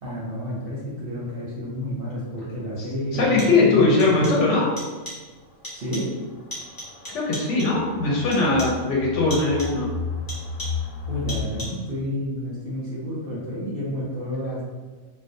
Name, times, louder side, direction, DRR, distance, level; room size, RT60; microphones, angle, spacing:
voice 1, 0.0-4.2 5.7-6.1 11.1-14.6, equal, 60° right, -6 dB, 0.6 m, -30 dB
sound 1, 2.1-2.2 3.1-3.7 4.0-4.5 4.8-5.3 5.6-6.2 6.5-7.9 8.3-8.9 9.3-9.9 10.3-10.9 11.3-11.9, equal, 25° left, 0.5 m, -38 dB
voice 2, 3.1-4.7 7.1-9.9, left 3 dB, 70° left, -3 dB, 0.9 m, -20 dB
sound 2, 5.3-11.4, left 4 dB, 90° left, 1.0 m, -34 dB
2.3 x 2.2 x 2.5 m, 1.3 s
omnidirectional pair, 1.4 m